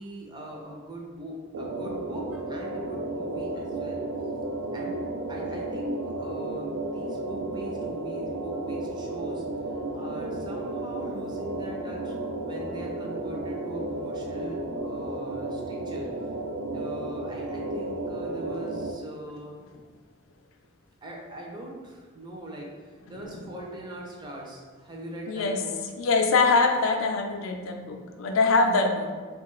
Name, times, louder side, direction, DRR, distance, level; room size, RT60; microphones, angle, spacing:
voice 1, 0.0-4.0 4.7-5.0 5.3-16.1 16.7-19.6 21.0-25.8, right 1 dB, 20° right, -1 dB, 0.4 m, -41 dB
sound 1, 1.5-18.9, right 2 dB, 85° right, 0.4 m, -33 dB
voice 2, 25.3-25.6 26.0-29.1, left 3 dB, 75° left, 4 dB, 0.4 m, -23 dB
2.9 x 2.3 x 3.0 m, 1.5 s
head